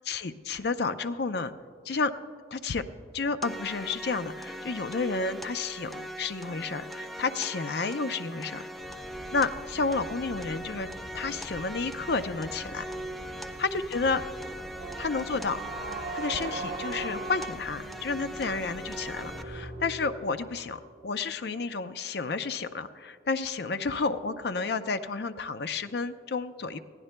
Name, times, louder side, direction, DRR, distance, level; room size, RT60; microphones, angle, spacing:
voice 1, 0.0-1.5 1.8-2.1 2.5-2.9 3.1-8.7 9.3-10.9 11.1-12.9 13.6-14.2 15.0-15.6 16.1-26.8, left 4 dB, 65° left, 10 dB, 0.5 m, -31 dB
sound 1, 3.4-19.4, right 1 dB, ahead, 0.4 m, -40 dB
sound 2, 8.8-19.6, equal, 45° left, 2.1 m, -48 dB
sound 3, 14.8-20.8, right 2 dB, 55° right, 1.9 m, -40 dB
21.5 x 15.5 x 2.2 m, 2.2 s
head